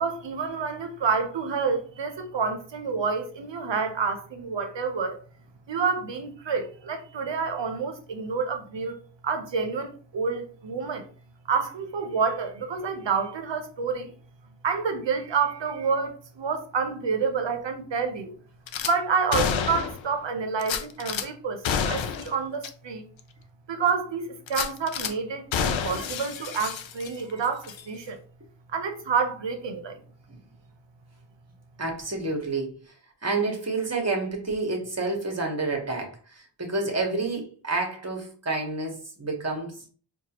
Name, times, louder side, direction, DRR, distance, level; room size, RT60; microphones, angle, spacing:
voice 1, 0.0-5.2 5.7-8.9 9.2-11.1 11.5-14.1 14.6-18.4 18.8-23.1 23.7-28.2 28.7-30.0, right 5 dB, 70° right, 0.8 m, -28 dB
Gunshot gunfire / Glass, 18.7-18.9 19.3-20.1 20.6-21.3 21.6-22.3 22.6-22.7 23.2-23.3 24.5-25.1 25.5-27.3 27.6-27.8, left 7 dB, 80° left, 0.5 m, -29 dB
voice 2, 31.8-33.0 33.2-39.9, right 3 dB, 35° right, 1.2 m, -29 dB
4.6 x 2.4 x 2.9 m
wide cardioid pair, 55°, 45 cm